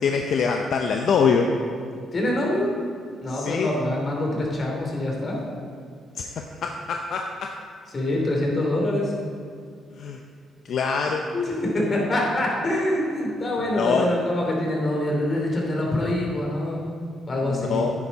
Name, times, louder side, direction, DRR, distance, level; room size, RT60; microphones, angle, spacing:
voice 1, 0.0-1.5 3.2-3.7 6.1-7.6 10.0-10.2 10.6-11.3 13.6-14.1 17.4-17.9, left 5 dB, 65° left, 3 dB, 0.7 m, -24 dB
voice 2, 2.1-2.7 3.2-5.4 7.9-9.1 11.3-17.8, left 1 dB, 40° left, -1 dB, 3.0 m, -25 dB
9.9 x 9.8 x 4.1 m, 2.3 s
cardioid pair, 90°, 0 cm